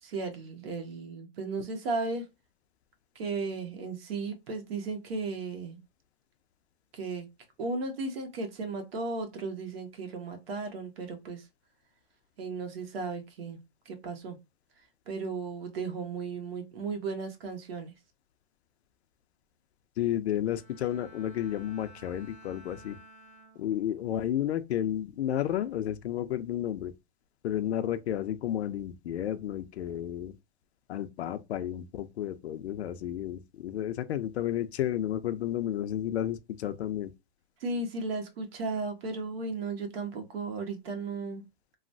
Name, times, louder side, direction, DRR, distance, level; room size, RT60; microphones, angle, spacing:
voice 1, 0.0-2.2 3.1-5.8 6.9-7.3 7.6-11.5 12.4-13.6 13.8-14.4 15.1-17.9 37.6-41.4, right 3 dB, 65° right, 1.1 m, -35 dB
voice 2, 20.0-23.0 23.6-26.9 27.4-30.4 30.9-37.1, left 11 dB, 85° left, 0.6 m, -32 dB
Bowed string instrument, 20.5-24.1 24.5-24.9, right 1 dB, 5° left, 0.5 m, -54 dB
3.1 x 2.1 x 2.6 m
hypercardioid pair, 155°, 32 cm